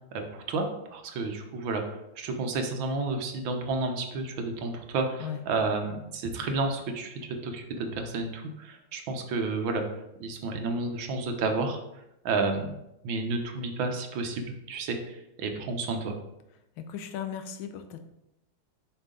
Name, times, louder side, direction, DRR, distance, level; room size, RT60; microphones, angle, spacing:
voice 1, 0.1-0.7 0.9-9.8 10.2-11.8 12.2-12.7 13.0-16.1, right 3 dB, 70° right, 4 dB, 1.6 m, -31 dB
voice 2, 16.8-18.0, left 8 dB, 85° left, 8 dB, 1.6 m, -37 dB
7.1 x 5.6 x 3.7 m, 0.88 s
omnidirectional pair, 2.2 m